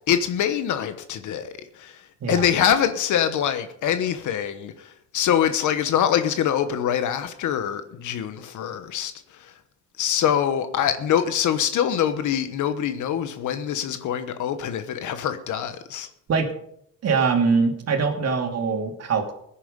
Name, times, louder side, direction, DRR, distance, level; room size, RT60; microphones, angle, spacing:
voice 1, 0.1-9.6 10.0-16.1, left 9 dB, 75° left, 1.1 m, -24 dB
voice 2, 17.0-19.3, right 5 dB, 55° right, 2.6 m, -22 dB
15.5 x 10.0 x 5.2 m
cardioid pair, 90°, 30 cm